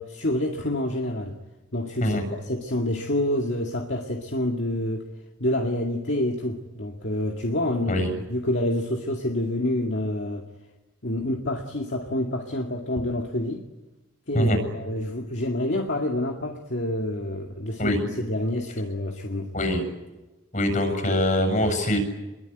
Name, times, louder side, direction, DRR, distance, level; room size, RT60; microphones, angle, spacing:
voice 1, 0.0-1.4 1.7-5.1 5.4-10.5 11.0-13.6 14.3-19.5, left 1 dB, 60° left, 1 dB, 2.2 m, -28 dB
voice 2, 19.5-19.8 20.5-22.0, left 1 dB, 40° left, 6 dB, 7.5 m, -23 dB
27.5 x 22.5 x 9.3 m, 1.1 s
head